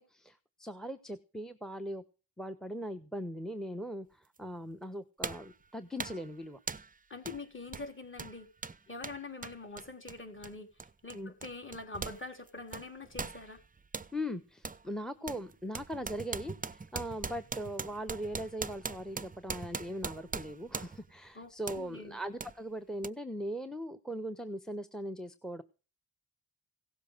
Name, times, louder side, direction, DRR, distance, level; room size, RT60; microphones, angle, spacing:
voice 1, 0.0-2.0 2.4-6.6 11.1-11.3 14.1-25.6, equal, ahead, 11 dB, 1.1 m, -40 dB
sound 1, 4.4-4.5 5.2-5.5 6.0-6.3 6.7-6.9 7.3-7.4 7.7-12.2 12.5-14.1 14.6-14.8 15.3-21.1 21.7-21.9 22.4-22.5 23.0-23.1, right 4 dB, 20° right, 0.7 m, -41 dB
voice 2, 7.1-8.5 8.9-10.7 11.0-13.6 21.3-22.2, left 3 dB, 30° left, 4 dB, 4.0 m, -44 dB
17.0 x 7.4 x 6.7 m, 0.35 s
cardioid pair, 85°, 43 cm